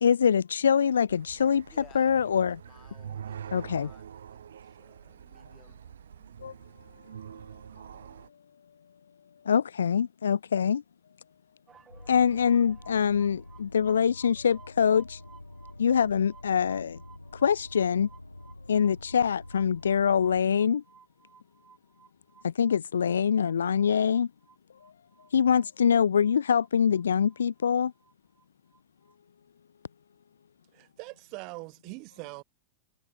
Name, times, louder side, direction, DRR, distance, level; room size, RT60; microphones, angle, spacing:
voice 1, 0.0-1.7 2.0-2.6 3.5-3.9 6.4-6.5 9.4-10.8 12.1-15.2 15.8-17.0 17.3-18.1 18.7-20.8 22.4-24.3 24.8-24.9 25.3-27.9, left 7 dB, 70° left, 0.3 m, -24 dB
sound 1, 1.1-8.3, right 8 dB, 65° right, 1.4 m, -45 dB
voice 2, 1.7-5.8, left 10 dB, 30° left, 4.7 m, -58 dB
sound 2, 11.7-28.5 28.7-29.2, right 7 dB, 20° right, 4.3 m, -58 dB
sound 3, 11.9-20.4, left 1 dB, 85° left, 2.3 m, -47 dB
voice 3, 30.7-32.4, right 27 dB, 45° right, 1.6 m, -42 dB
figure-of-eight pair, 90°, 0 cm